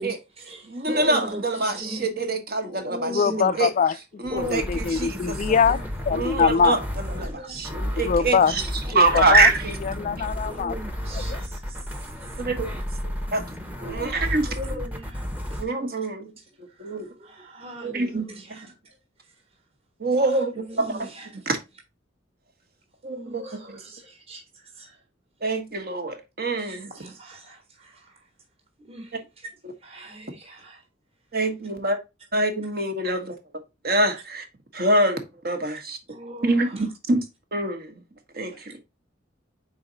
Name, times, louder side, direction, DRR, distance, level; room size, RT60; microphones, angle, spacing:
voice 1, 0.0-2.1 2.6-3.7 4.3-4.6 5.5-5.9 7.1-7.6 8.8-9.2 10.4-11.9 12.2-12.3 13.2-13.3 13.8-15.6 16.0-18.7 20.3-21.5 23.1-25.0 26.6-28.2 28.8-29.5 29.8-30.8 33.0-33.1 36.1-36.9 38.5-38.6, equal, 35° right, 1.5 m, -39 dB
voice 2, 0.7-3.1 3.5-3.7 4.2-5.6 6.1-6.8 7.1-8.6 8.9-9.8 12.4-12.7 13.3-13.4 13.8-14.5 15.6-16.3 16.8-17.0 17.8-18.3 20.0-21.1 21.4-21.6 23.0-23.4 23.7-23.8 25.4-26.9 31.3-32.0 32.3-33.4 33.8-34.4 34.7-36.0 36.4-37.2 37.5-37.9 38.3-38.7, right 2 dB, 55° right, 1.4 m, -24 dB
voice 3, 3.1-6.8 8.0-8.5 8.9-9.5 9.8-10.8 11.1-11.4, left 6 dB, 40° left, 0.3 m, -23 dB
sound 1, 4.2-15.6, equal, 10° right, 0.9 m, -32 dB
5.6 x 4.3 x 3.9 m
head